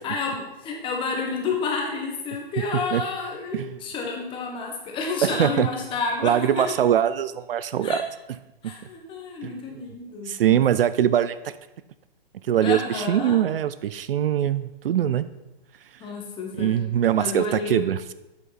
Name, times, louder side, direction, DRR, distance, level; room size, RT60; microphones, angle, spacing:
voice 1, 0.0-6.6 7.8-8.0 8.6-10.6 12.6-13.5 16.0-16.9 17.2-17.9, left 4 dB, 15° left, 1 dB, 1.4 m, -30 dB
voice 2, 5.2-5.7 6.2-8.0 8.6-8.7 9.4-9.5 10.3-11.5 12.5-15.3 16.6-18.1, right 10 dB, 65° right, 14 dB, 0.5 m, -22 dB
8.3 x 7.4 x 4.1 m, 0.97 s
hypercardioid pair, 150°, 30 cm